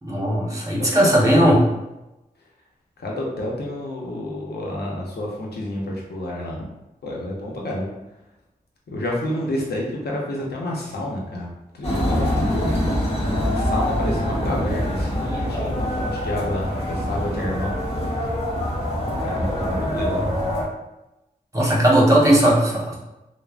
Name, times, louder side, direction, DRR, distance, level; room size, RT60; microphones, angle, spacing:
voice 1, 0.0-1.6 21.5-22.9, right 1 dB, 20° right, -5 dB, 1.1 m, -17 dB
voice 2, 0.8-1.2 3.0-6.6 7.0-7.9 8.9-12.6 13.2-18.4 19.2-20.3, left 1 dB, 85° left, -2 dB, 0.6 m, -29 dB
sound 1, 11.8-20.6, equal, 35° left, 1.1 m, -24 dB
3.2 x 2.0 x 2.4 m, 0.96 s
cardioid pair, 40°, 16 cm